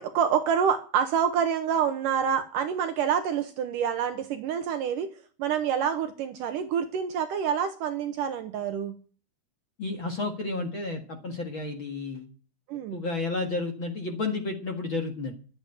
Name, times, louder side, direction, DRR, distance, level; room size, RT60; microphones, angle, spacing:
voice 1, 0.0-5.1 5.4-8.9 12.7-13.0, right 8 dB, 70° right, 9 dB, 2.2 m, -27 dB
voice 2, 9.8-12.3 12.9-15.3, left 3 dB, 45° left, 3 dB, 1.9 m, -31 dB
12.0 x 8.9 x 9.0 m, 0.40 s
omnidirectional pair, 4.5 m